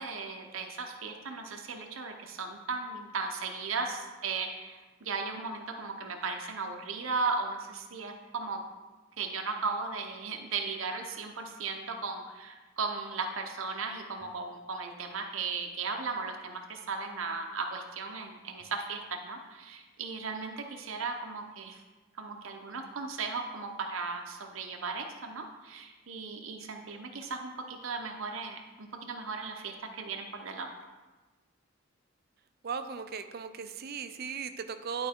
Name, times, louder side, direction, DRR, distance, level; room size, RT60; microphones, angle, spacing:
voice 1, 0.0-8.6 9.2-21.8 22.2-30.7, right 4 dB, 85° right, 3 dB, 0.8 m, -36 dB
voice 2, 32.6-35.1, right 6 dB, 50° right, 9 dB, 0.5 m, -37 dB
10.5 x 4.7 x 3.7 m, 1.2 s
head